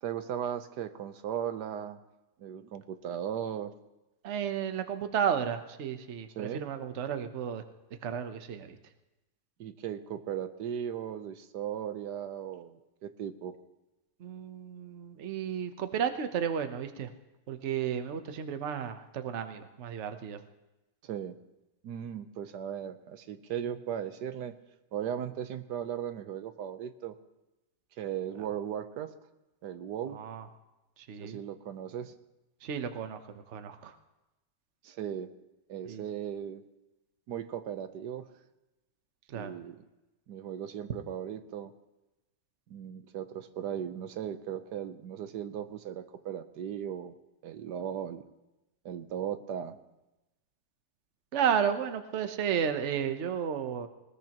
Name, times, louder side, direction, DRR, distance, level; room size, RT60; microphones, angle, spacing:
voice 1, 0.0-2.0 2.4-3.7 6.4-6.6 9.6-13.5 21.0-21.4 21.8-24.5 24.9-27.1 28.0-29.1 29.6-30.2 31.2-32.1 34.8-35.3 35.7-36.6 37.3-38.3 39.3-39.8 40.3-41.7 42.7-47.1 47.4-48.2 48.8-49.8, right 9 dB, 70° right, 10 dB, 1.4 m, -37 dB
voice 2, 4.2-7.6 8.0-8.8 14.2-17.1 17.5-20.4 30.1-30.5 31.0-31.4 32.6-33.9 35.8-36.0 39.3-39.5 51.3-53.9, right 8 dB, 50° right, 8 dB, 1.0 m, -33 dB
20.0 x 18.5 x 3.0 m, 1.0 s
omnidirectional pair, 1.9 m